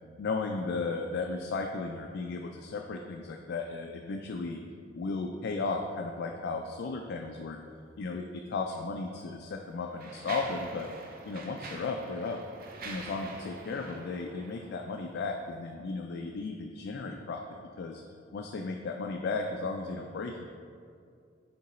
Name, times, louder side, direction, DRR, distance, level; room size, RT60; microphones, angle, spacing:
voice 1, 0.2-4.6 4.9-7.6 8.0-10.9 11.3-12.4 12.8-17.4 17.8-18.0 18.3-20.5, left 3 dB, 55° left, 2 dB, 0.3 m, -35 dB
Mechanisms, 8.6-8.8 9.5-15.2, right 3 dB, 50° right, 0.6 m, -45 dB
6.7 x 3.8 x 4.2 m, 2.3 s
head